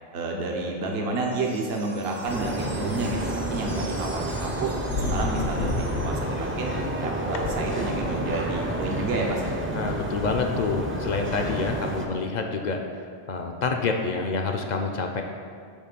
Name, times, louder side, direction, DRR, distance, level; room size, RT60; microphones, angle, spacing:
voice 1, 0.1-4.7 5.1-6.7 7.0-9.6, right 2 dB, 65° right, 0 dB, 1.1 m, -30 dB
sound 1, 1.1-6.6, right 3 dB, 40° right, 0.8 m, -45 dB
sound 2, 2.3-12.1, right 1 dB, 20° right, 0.4 m, -30 dB
sound 3, 2.8-8.6 9.0-9.1 9.5-9.6, left 3 dB, 90° left, 1.0 m, -34 dB
voice 2, 9.7-12.8 13.3-15.2, left 4 dB, 50° left, 4 dB, 0.6 m, -27 dB
8.4 x 3.1 x 5.9 m, 2.2 s
omnidirectional pair, 1.1 m